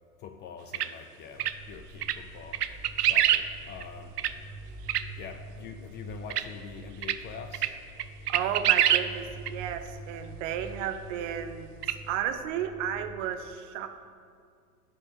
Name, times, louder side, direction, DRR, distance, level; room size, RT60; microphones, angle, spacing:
voice 1, 0.2-4.2 4.7-4.8 5.2-7.8, left 6 dB, 25° left, 7 dB, 0.4 m, -45 dB
sound 1, 0.7-0.9 1.4-1.5 2.0-2.2 2.5-3.4 3.8-3.9 4.2-4.3 4.9-5.0 6.3-6.4 7.0-7.2 7.5-7.7 8.0-9.1 9.5-9.6 11.8-11.9, right 11 dB, 85° right, 0.6 m, -24 dB
sound 2, 1.3-13.2, right 2 dB, 35° right, 1.9 m, -46 dB
voice 2, 8.3-13.9, right 9 dB, 50° right, 8 dB, 1.0 m, -33 dB
11.0 x 5.0 x 7.7 m, 2.2 s
hypercardioid pair, 100°, 46 cm